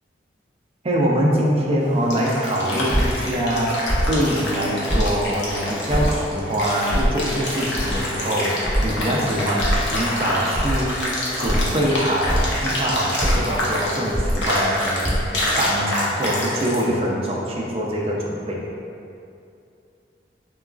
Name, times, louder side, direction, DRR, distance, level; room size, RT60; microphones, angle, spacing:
voice 1, 0.8-11.0 11.4-18.6, equal, 35° right, -3 dB, 0.4 m, -24 dB
sound 1, 1.8-16.8, left 1 dB, 80° left, 0.6 m, -27 dB
sound 2, 2.9-3.1 3.9-4.1 4.9-5.1 5.9-6.2 6.9-7.2 7.7-8.0 8.6-8.9 9.6-9.9 10.5-10.9 11.4-11.7 12.2-12.6 13.2-13.4 14.1-14.4 15.0-15.3, equal, 5° left, 1.0 m, -22 dB
3.7 x 2.2 x 2.4 m, 2.5 s
head